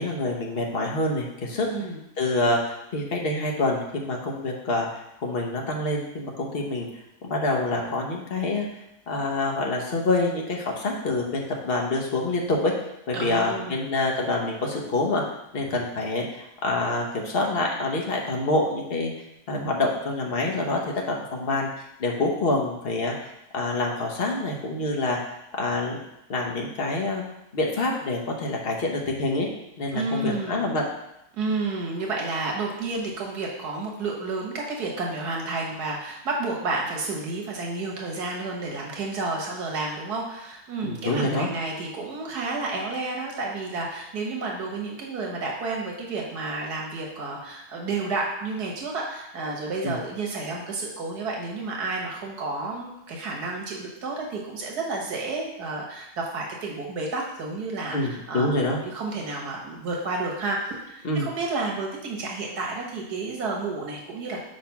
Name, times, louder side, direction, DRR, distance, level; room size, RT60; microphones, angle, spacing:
voice 1, 0.0-1.7 2.2-4.9 5.2-6.9 7.2-8.7 9.1-12.7 13.1-15.2 15.5-19.1 19.5-20.8 21.1-25.2 25.6-26.0 26.3-27.2 27.5-29.5 29.8-30.9 40.8-41.5 49.8-50.0 57.9-58.8 61.0-61.3, left 2 dB, 45° left, -1 dB, 1.1 m, -26 dB
voice 2, 13.1-13.8 29.9-30.6 31.3-58.5 58.9-60.6 60.9-64.4, right 3 dB, 80° right, -1 dB, 1.8 m, -31 dB
4.9 x 4.1 x 5.8 m, 0.84 s
omnidirectional pair, 1.7 m